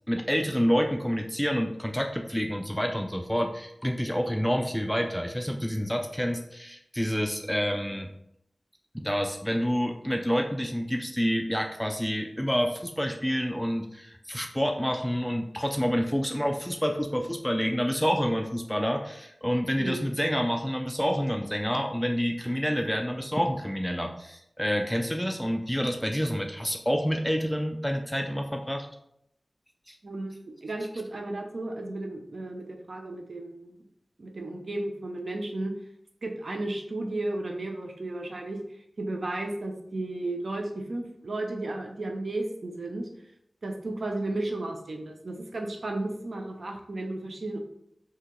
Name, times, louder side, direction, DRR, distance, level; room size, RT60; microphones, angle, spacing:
voice 1, 0.1-8.1 8.9-28.9 29.9-30.0, equal, 5° left, 3 dB, 0.3 m, -28 dB
voice 2, 30.0-33.7 34.2-35.7 36.2-43.1 43.6-47.6, right 2 dB, 75° right, 2 dB, 0.5 m, -34 dB
2.7 x 2.7 x 3.7 m, 0.77 s
wide cardioid pair, 45°, 0 cm